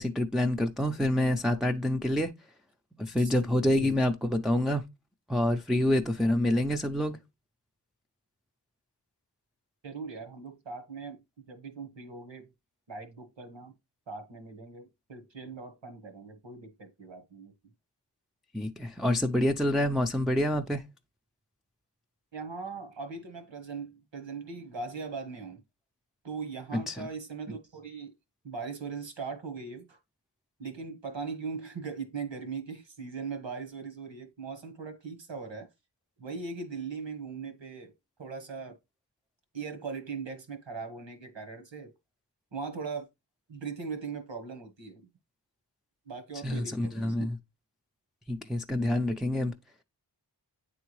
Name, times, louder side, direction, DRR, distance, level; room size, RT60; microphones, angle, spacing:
voice 1, 0.0-2.3 2.9-4.8 5.3-7.2 18.5-20.8 26.7-27.1 46.3-47.4 48.3-49.5, left 1 dB, ahead, 0.5 m, -27 dB
voice 2, 3.2-3.9 9.8-11.2 11.5-12.5 12.9-13.7 14.1-17.5 22.3-25.6 26.2-28.1 28.4-30.0 30.6-35.7 36.2-37.9 38.2-38.7 39.5-41.9 42.5-43.1 43.5-45.1 46.0-47.2, right 5 dB, 85° right, 1.5 m, -40 dB
9.0 x 3.6 x 3.1 m
wide cardioid pair, 45°, 44 cm